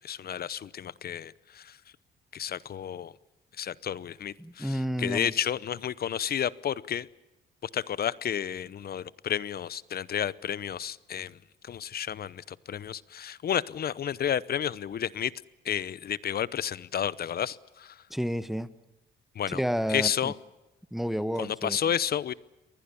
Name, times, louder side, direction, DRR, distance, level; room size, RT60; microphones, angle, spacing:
voice 1, 0.0-1.8 2.3-3.1 3.6-7.1 7.6-11.4 11.6-15.3 15.6-18.0 19.3-19.6 19.9-20.3 21.4-22.3, left 9 dB, 50° left, 20 dB, 0.8 m, -31 dB
voice 2, 4.4-5.3 18.1-18.7 19.5-20.3 20.9-21.8, equal, ahead, 14 dB, 1.2 m, -30 dB
29.5 x 20.5 x 7.1 m, 0.99 s
cardioid pair, 90°, 20 cm